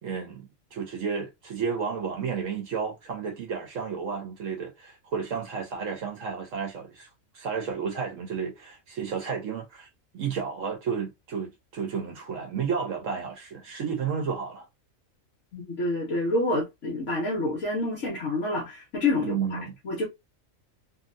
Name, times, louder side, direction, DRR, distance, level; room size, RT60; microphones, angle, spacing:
voice 1, 0.0-7.1 7.3-9.9 10.1-14.6 19.2-19.8, right 6 dB, 70° right, 1.1 m, -32 dB
voice 2, 15.5-19.6 19.8-20.1, left 2 dB, 65° left, 1.2 m, -28 dB
2.8 x 2.7 x 2.5 m
omnidirectional pair, 1.4 m